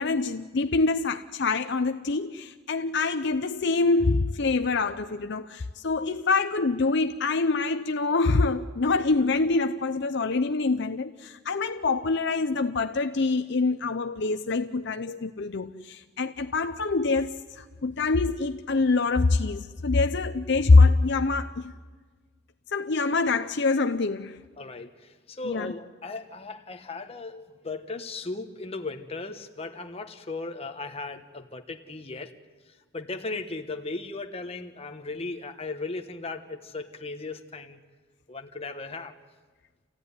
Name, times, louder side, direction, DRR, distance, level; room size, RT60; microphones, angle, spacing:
voice 1, 0.0-21.7 22.7-24.4 25.4-25.7, left 3 dB, 55° left, 0.7 m, -25 dB
voice 2, 24.6-32.3 32.7-37.8 38.3-39.1, left 3 dB, 30° left, 1.3 m, -37 dB
28.0 x 15.5 x 9.7 m
head